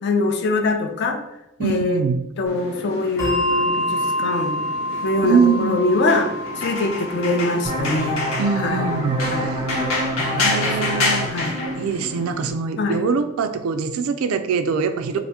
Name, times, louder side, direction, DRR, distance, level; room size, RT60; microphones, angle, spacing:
voice 1, 0.0-1.2 1.6-2.0 2.4-4.6 5.0-6.3 6.5-8.2 8.6-8.9 9.2-9.6 10.2-10.9 11.3-11.5 12.8-13.0, left 2 dB, 55° left, 5 dB, 0.4 m, -23 dB
voice 2, 1.6-2.2 5.2-5.9 8.4-9.6 10.4-15.2, right 5 dB, 75° right, 9 dB, 0.3 m, -23 dB
sound 1, 2.5-12.5, left 2 dB, 85° left, 1.0 m, -29 dB
Bell, 3.2-10.1, left 1 dB, 15° left, 0.7 m, -28 dB
sound 2, 7.6-13.0, equal, 20° right, 0.5 m, -27 dB
2.8 x 2.5 x 3.5 m, 0.92 s
head